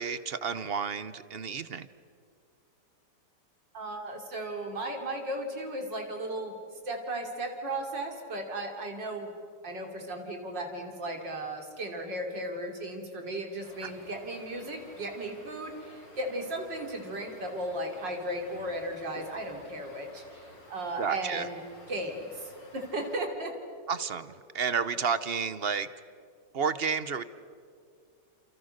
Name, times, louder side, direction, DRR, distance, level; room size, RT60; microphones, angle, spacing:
voice 1, 0.0-1.9 13.8-13.9 21.0-21.5 23.9-25.9 26.5-27.2, right 6 dB, 45° right, 14 dB, 0.8 m, -31 dB
voice 2, 3.7-6.5 6.9-9.3 9.6-21.6 21.9-23.5, right 1 dB, 85° right, 3 dB, 3.9 m, -36 dB
sound 1, 13.6-23.2, left 1 dB, 85° left, 4.9 m, -52 dB
29.5 x 28.0 x 6.6 m, 2.3 s
omnidirectional pair, 1.9 m